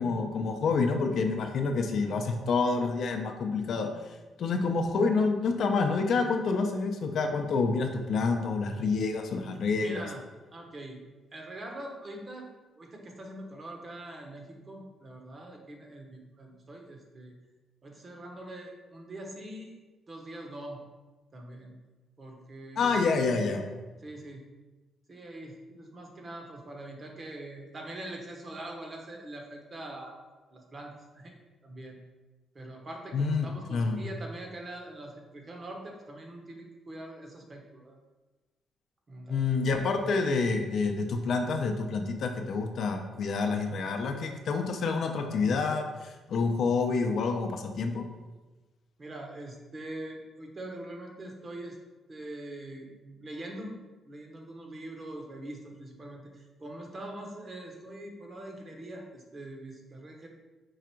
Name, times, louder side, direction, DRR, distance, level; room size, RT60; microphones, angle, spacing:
voice 1, 0.0-3.9 4.4-10.0 22.8-23.7 33.1-34.0 39.3-48.0, left 4 dB, 65° left, 4 dB, 0.5 m, -28 dB
voice 2, 9.8-10.3 10.5-11.0 11.3-12.5 12.8-17.3 17.8-19.7 20.1-20.8 21.3-21.8 22.2-23.1 24.0-24.5 25.1-30.2 30.5-31.4 31.6-32.0 32.5-38.0 39.1-39.5 49.0-51.8 52.1-60.3, right 1 dB, 35° right, 1 dB, 0.9 m, -43 dB
4.7 x 2.5 x 4.4 m, 1.2 s
cardioid pair, 90°, 0 cm